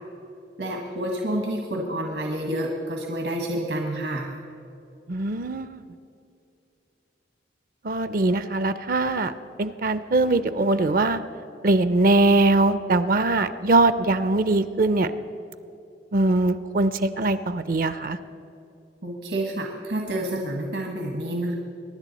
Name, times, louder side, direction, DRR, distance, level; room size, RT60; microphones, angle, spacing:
voice 1, 0.6-4.3 19.0-21.6, right 1 dB, 80° right, 1 dB, 1.5 m, -29 dB
voice 2, 5.1-5.8 7.8-9.3 9.6-11.2 11.6-15.1 16.1-18.2, right 2 dB, 50° right, 13 dB, 0.5 m, -21 dB
24.0 x 10.5 x 4.1 m, 2.7 s
head